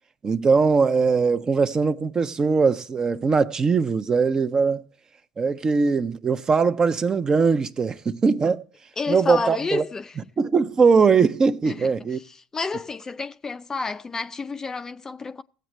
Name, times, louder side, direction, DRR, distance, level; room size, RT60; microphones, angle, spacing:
voice 1, 0.2-4.8 5.4-8.6 9.1-9.8 10.4-12.2, right 5 dB, 35° right, 0.7 m, -21 dB
voice 2, 9.0-10.1 11.7-11.9 12.2-15.4, left 4 dB, 25° left, 0.4 m, -30 dB
17.5 x 7.9 x 3.1 m
hypercardioid pair, 65°, 2 cm